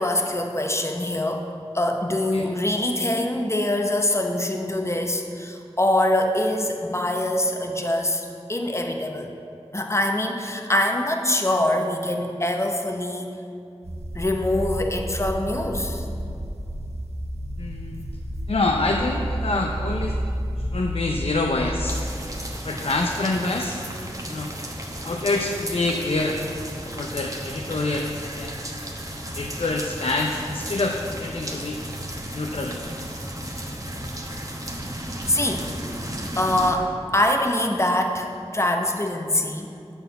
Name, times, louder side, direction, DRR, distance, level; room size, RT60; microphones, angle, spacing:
voice 1, 0.0-1.5 1.7-9.3 9.7-13.4 14.1-16.0 17.9-18.0 35.3-35.8 36.4-39.7, left 1 dB, 25° left, 3 dB, 0.8 m, -24 dB
sound 1, 13.8-22.6 23.4-23.8 24.3-24.4 28.0-28.6, equal, 80° right, 0.9 m, -31 dB
voice 2, 17.6-18.0 18.5-20.1 20.7-22.0 22.6-23.8 24.3-24.5 25.0-26.4 26.8-28.6 29.3-31.8 32.3-32.8, left 2 dB, 60° left, 1 dB, 0.6 m, -26 dB
sound 2, 21.9-36.7, right 1 dB, 30° right, 1.0 m, -34 dB
8.8 x 4.4 x 6.7 m, 2.5 s
wide cardioid pair, 55°, 11 cm